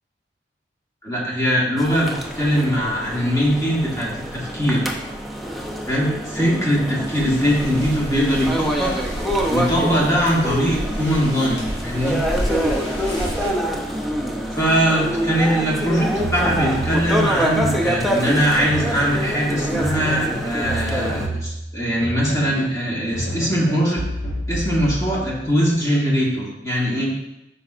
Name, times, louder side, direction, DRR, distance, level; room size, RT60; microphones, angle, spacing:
voice 1, 1.0-2.1 2.4-4.8 5.9-8.9 9.5-12.2 14.5-24.0 24.5-27.3, equal, 20° left, -5 dB, 1.7 m, -21 dB
sound 1, 1.8-21.3, equal, ahead, 0.6 m, -26 dB
sound 2, 7.0-13.5, equal, 85° left, 2.6 m, -31 dB
sound 3, 16.2-18.3 18.7-19.4 19.8-22.8 23.1-25.5, equal, 45° left, 2.2 m, -29 dB
9.2 x 5.4 x 2.5 m, 0.87 s
head